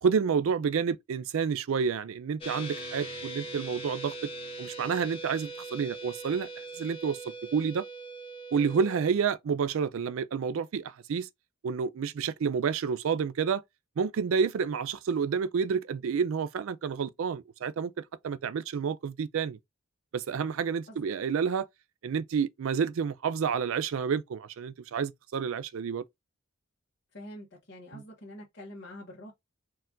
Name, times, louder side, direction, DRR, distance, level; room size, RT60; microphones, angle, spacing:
voice 1, 0.0-4.1 4.6-6.5 6.8-7.9 8.5-11.3 11.6-13.6 14.0-19.6 20.1-21.7 22.0-26.0 27.9-28.0, right 6 dB, 65° right, 0.3 m, -29 dB
sound 1, 2.4-9.1, right 2 dB, 25° left, 1.2 m, -41 dB
voice 2, 27.1-29.3, left 1 dB, 50° left, 1.2 m, -45 dB
4.3 x 2.4 x 3.7 m
head